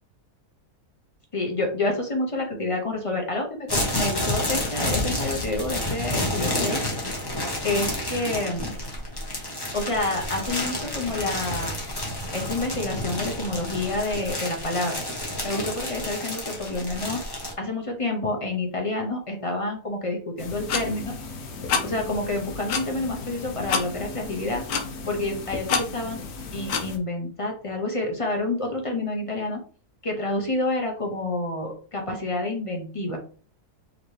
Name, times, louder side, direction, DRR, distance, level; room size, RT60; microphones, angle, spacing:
voice 1, 1.3-6.8 7.6-8.7 9.7-11.7 12.3-15.0 15.4-17.3 17.6-21.1 21.8-24.6 25.1-26.2 26.5-29.6 30.0-33.2, left 2 dB, 40° left, 2 dB, 0.5 m, -28 dB
sound 1, 3.7-17.5, left 1 dB, 20° left, 0.8 m, -30 dB
sound 2, 20.4-27.0, left 5 dB, 70° left, 1.3 m, -31 dB
5.0 x 2.9 x 3.1 m, 0.42 s
omnidirectional pair, 1.7 m